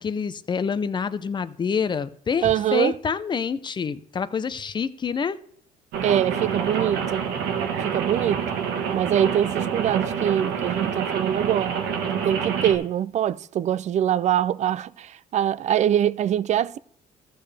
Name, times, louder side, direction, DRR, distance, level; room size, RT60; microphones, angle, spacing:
voice 1, 0.0-5.4, left 6 dB, 25° left, 0.5 m, -27 dB
voice 2, 2.4-2.9 6.0-7.3 7.8-8.4 8.9-11.8 12.1-16.8, right 10 dB, 45° right, 0.4 m, -23 dB
Rain, 5.9-12.8, right 7 dB, 80° right, 1.4 m, -27 dB
14.5 x 6.7 x 3.3 m
cardioid pair, 110°, 17 cm